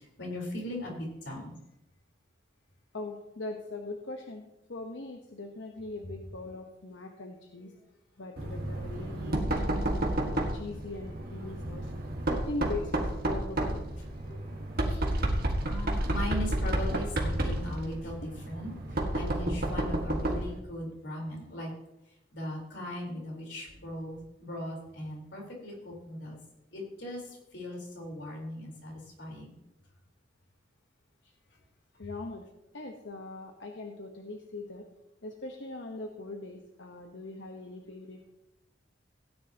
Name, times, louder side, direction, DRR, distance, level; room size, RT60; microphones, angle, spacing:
voice 1, 0.2-1.6 14.2-14.4 14.7-15.0 15.7-18.7 19.1-21.7 22.3-26.4 26.7-27.2 27.5-28.9 29.2-29.5, left 1 dB, 70° left, -2 dB, 4.0 m, -38 dB
voice 2, 2.9-7.7 8.2-11.9 12.3-13.8 16.9-17.0 18.7-18.8 32.0-32.4 32.7-34.9 35.2-38.3, left 2 dB, 90° left, 3 dB, 1.1 m, -41 dB
Knock, 8.4-20.6, right 1 dB, 55° right, 1.7 m, -31 dB
17.0 x 9.9 x 2.9 m, 0.88 s
head